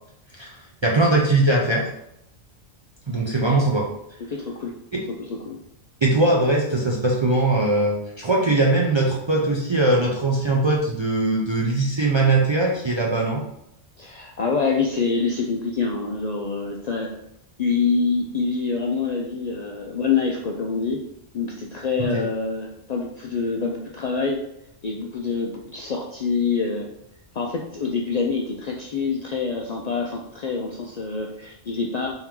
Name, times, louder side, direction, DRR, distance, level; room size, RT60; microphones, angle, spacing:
voice 1, 0.8-1.9 3.1-3.9 4.9-5.0 6.0-13.4 22.0-22.2, right 2 dB, 40° right, -3 dB, 0.4 m, -20 dB
voice 2, 3.3-3.6 4.3-4.7 5.3-5.6 14.0-17.1 17.6-21.0 21.3-24.4 24.8-26.9 27.3-32.1, left 4 dB, 60° left, 0 dB, 0.4 m, -26 dB
3.6 x 3.0 x 3.6 m, 0.80 s
omnidirectional pair, 1.1 m